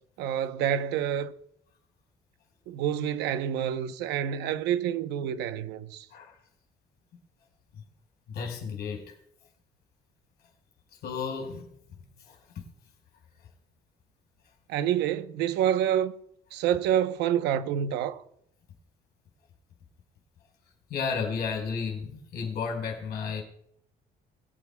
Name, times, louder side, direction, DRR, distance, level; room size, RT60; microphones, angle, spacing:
voice 1, 0.2-1.3 2.7-6.1 14.7-16.1 16.5-18.2, right 10 dB, 85° right, 0.9 m, -27 dB
voice 2, 8.3-9.1 11.0-12.4 20.9-23.4, left 5 dB, 70° left, 4.8 m, -33 dB
23.5 x 9.6 x 2.3 m
cardioid pair, 110°, 17 cm